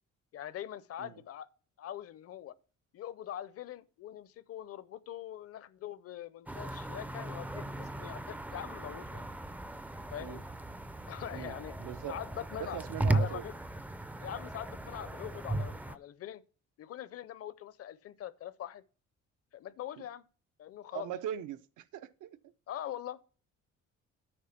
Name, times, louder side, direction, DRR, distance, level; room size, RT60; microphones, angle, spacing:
voice 1, 0.3-1.5 1.8-2.5 2.9-9.2 10.1-10.4 11.1-11.7 12.1-12.8 13.1-13.5 14.2-16.4 16.8-18.8 19.5-20.2 20.6-21.1 22.7-23.2, left 11 dB, 50° left, 0.6 m, -43 dB
sound 1, 6.5-16.0, right 2 dB, 5° right, 0.4 m, -37 dB
voice 2, 11.3-12.2 12.6-13.4 20.0-20.1 20.9-22.5, right 10 dB, 80° right, 0.7 m, -41 dB
8.8 x 5.2 x 5.7 m
cardioid pair, 140°, 30 cm